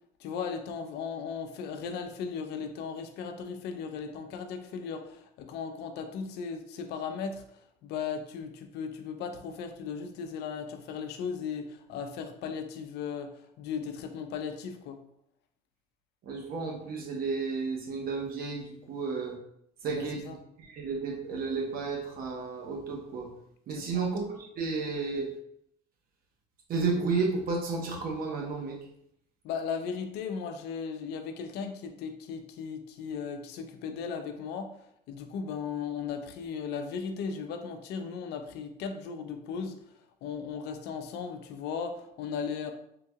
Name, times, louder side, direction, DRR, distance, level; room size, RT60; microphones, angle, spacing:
voice 1, 0.2-15.0 19.9-20.4 23.8-24.1 29.4-34.7 35.1-39.8 40.2-42.7, left 6 dB, 80° left, 6 dB, 0.5 m, -37 dB
voice 2, 16.3-19.3 19.8-20.2 20.7-23.3 23.7-25.3 26.7-28.8, right 4 dB, 60° right, 1 dB, 0.8 m, -32 dB
3.7 x 2.3 x 2.7 m, 0.74 s
cardioid pair, 110°, 17 cm